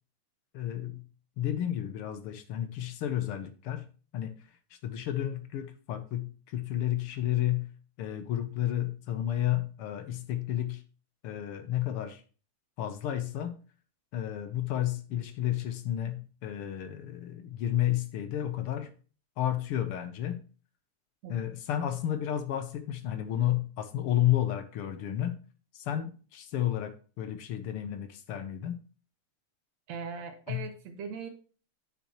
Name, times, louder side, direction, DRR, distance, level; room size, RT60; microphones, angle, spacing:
voice 1, 0.5-1.1 1.4-3.9 4.1-4.3 4.7-7.7 8.0-10.8 11.2-12.2 12.8-13.6 14.1-18.9 19.4-20.4 21.3-25.4 25.7-28.8 30.5-30.7, left 12 dB, 75° left, 1.3 m, -31 dB
voice 2, 29.9-31.3, right 5 dB, 70° right, 2.2 m, -39 dB
9.4 x 7.5 x 3.0 m
omnidirectional pair, 3.3 m